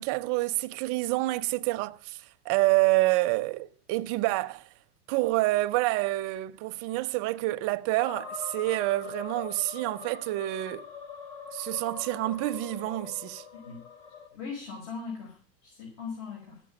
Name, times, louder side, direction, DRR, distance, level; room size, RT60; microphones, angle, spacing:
voice 1, 0.0-4.7 5.1-10.9 11.5-13.4, right 19 dB, 35° right, 0.5 m, -28 dB
sound 1, 8.0-14.3, left 5 dB, 40° left, 2.9 m, -43 dB
voice 2, 14.3-16.6, left 5 dB, 65° left, 5.2 m, -40 dB
14.0 x 6.4 x 8.8 m
supercardioid pair, 150°, 45 cm